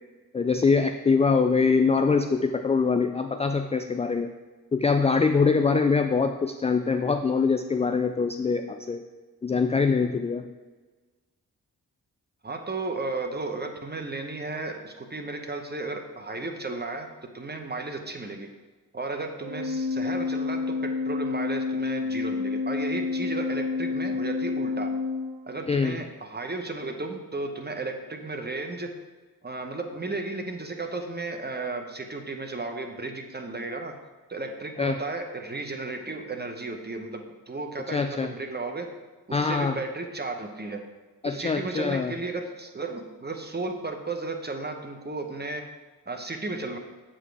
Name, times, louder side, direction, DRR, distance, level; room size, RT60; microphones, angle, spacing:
voice 1, 0.3-4.3 4.7-9.0 9.4-10.4 25.7-26.0 34.8-35.0 37.9-38.3 39.3-39.8 41.2-42.1, left 4 dB, 15° left, 7 dB, 0.3 m, -23 dB
voice 2, 12.4-17.1 17.3-18.5 18.9-24.9 25.5-28.9 29.4-33.9 34.3-38.9 39.3-40.8 41.2-45.6 46.1-46.8, right 3 dB, 25° right, 5 dB, 1.0 m, -34 dB
Organ, 19.4-25.9, left 4 dB, 65° right, 1.2 m, -29 dB
7.3 x 5.0 x 3.4 m, 1.3 s
supercardioid pair, 40°, 41 cm